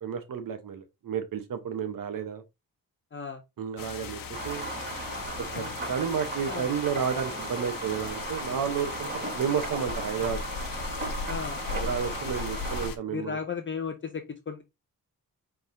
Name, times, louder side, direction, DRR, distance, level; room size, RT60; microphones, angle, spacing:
voice 1, 0.0-2.4 3.6-4.7 5.5-10.4 11.7-13.4, right 7 dB, 65° right, 1.0 m, -31 dB
sound 1, 3.8-13.0, left 5 dB, 65° left, 0.9 m, -38 dB
sound 2, 4.3-12.9, right 2 dB, 30° right, 2.9 m, -36 dB
voice 2, 11.3-11.6 13.1-14.6, left 6 dB, 35° left, 0.6 m, -35 dB
5.2 x 3.6 x 2.7 m
cardioid pair, 100°, 36 cm